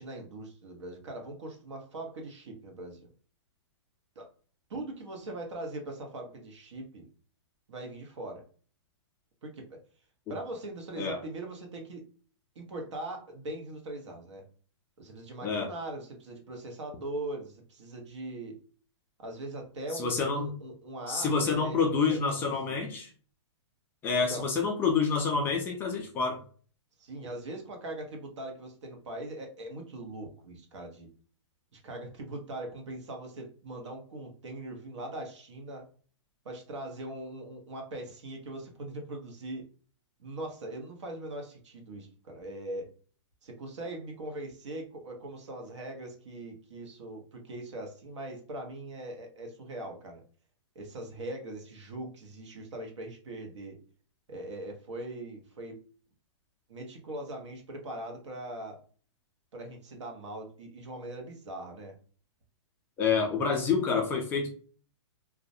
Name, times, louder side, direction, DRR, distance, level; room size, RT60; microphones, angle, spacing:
voice 1, 0.0-3.1 4.2-4.3 4.7-7.0 7.7-8.4 9.4-9.8 10.3-12.0 12.5-14.4 15.0-18.5 19.2-21.8 22.1-23.0 24.3-24.5 27.0-31.1 31.7-35.9 36.4-39.6 40.2-42.9 43.4-50.2 50.7-53.7 54.3-55.7 56.7-58.8 59.5-62.0, right 1 dB, 75° right, 3 dB, 0.9 m, -41 dB
voice 2, 19.9-20.5 21.1-23.1 24.0-26.4 63.0-64.5, left 5 dB, 15° left, 1 dB, 0.3 m, -28 dB
2.3 x 2.0 x 2.6 m, 0.42 s
hypercardioid pair, 145°, 15 cm